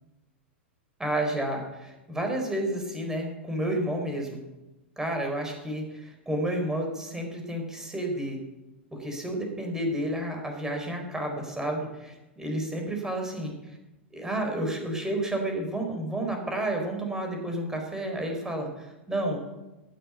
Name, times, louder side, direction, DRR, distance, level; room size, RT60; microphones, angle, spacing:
voice 1, 1.0-4.4 5.0-8.4 8.9-13.8 14.1-19.4, right 1 dB, 10° right, 3 dB, 4.3 m, -31 dB
14.0 x 11.0 x 8.2 m, 1.1 s
hypercardioid pair, 100°, 6 cm